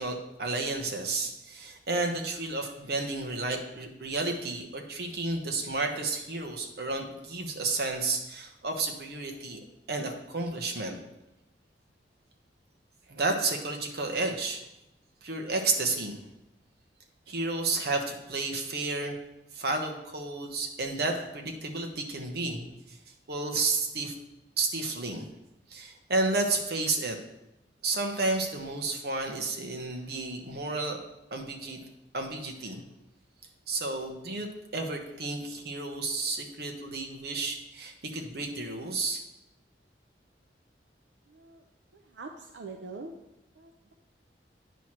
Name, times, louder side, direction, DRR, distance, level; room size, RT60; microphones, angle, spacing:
voice 1, 0.0-9.6 9.9-11.0 13.1-14.6 15.2-16.2 17.3-19.2 19.5-22.7 23.3-24.1 24.6-25.2 25.7-27.2 27.8-31.0 31.3-31.9 32.1-32.8 33.7-39.2, right 3 dB, 60° right, 3 dB, 1.0 m, -31 dB
voice 2, 41.3-41.7 41.9-43.1 43.6-43.9, right 3 dB, 90° right, 4 dB, 0.5 m, -44 dB
9.2 x 3.1 x 5.8 m, 0.91 s
head